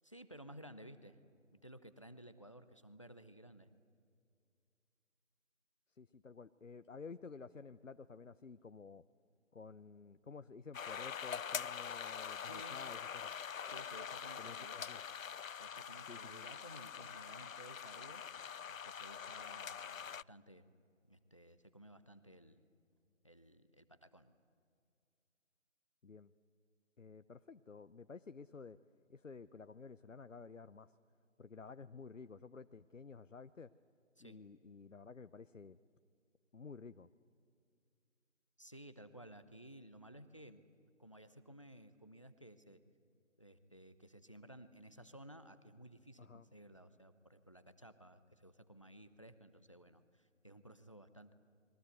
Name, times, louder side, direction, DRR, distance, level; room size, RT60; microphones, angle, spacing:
voice 1, 0.0-1.2 1.5-3.7 12.4-12.8 13.6-15.0 15.6-20.7 21.1-22.6 23.2-24.3 34.2-34.4 38.6-40.7 41.0-42.8 43.4-51.3, right 1 dB, 25° left, 12 dB, 0.9 m, -56 dB
voice 2, 5.9-9.0 9.5-13.3 14.4-15.0 16.1-16.5 26.0-26.3 27.0-28.8 29.1-30.9 31.4-33.7 34.2-35.8 36.5-37.1 46.2-46.5, left 4 dB, 70° left, 12 dB, 0.9 m, -52 dB
sound 1, 10.7-20.2, left 7 dB, 90° left, 0.5 m, -44 dB
29.5 x 22.5 x 8.0 m, 2.4 s
figure-of-eight pair, 170°, 39 cm